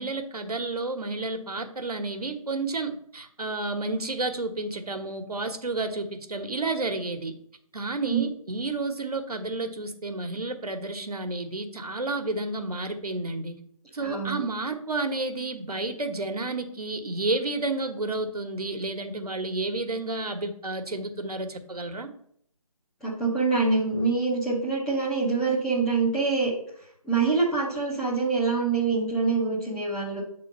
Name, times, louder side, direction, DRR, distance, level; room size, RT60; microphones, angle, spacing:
voice 1, 0.0-7.3 7.7-13.6 13.9-22.1, right 2 dB, 85° right, 6 dB, 1.1 m, -31 dB
voice 2, 14.0-14.4 23.0-26.5 27.0-30.2, right 4 dB, ahead, -8 dB, 0.5 m, -25 dB
7.1 x 3.7 x 5.3 m, 0.67 s
figure-of-eight pair, 160°, 19 cm